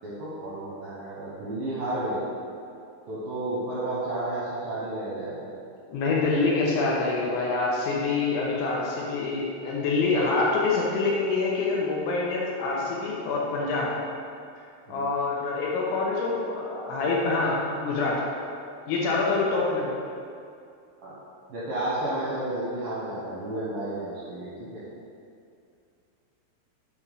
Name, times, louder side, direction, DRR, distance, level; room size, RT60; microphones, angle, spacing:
voice 1, 0.0-2.2 3.1-5.5 14.9-15.0 21.0-21.1 21.5-24.8, right 1 dB, 70° right, -10 dB, 2.2 m, -32 dB
voice 2, 5.9-13.9 14.9-18.2 18.9-19.9, left 3 dB, 75° left, -4 dB, 3.0 m, -26 dB
8.3 x 3.5 x 5.5 m, 2.5 s
omnidirectional pair, 5.8 m